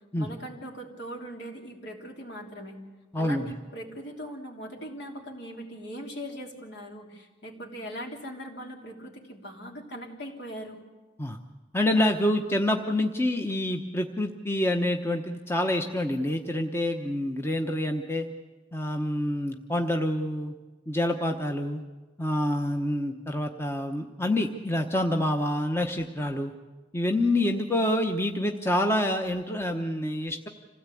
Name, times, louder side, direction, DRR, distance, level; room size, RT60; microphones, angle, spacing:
voice 1, 0.2-2.8 3.2-10.8, equal, 65° left, 1 dB, 3.3 m, -40 dB
voice 2, 3.1-3.5 11.2-11.4 11.7-18.3 18.7-20.5 20.9-21.8 22.2-26.5 26.9-30.5, left 1 dB, 15° left, 4 dB, 1.0 m, -27 dB
26.5 x 16.5 x 8.5 m, 1.3 s
head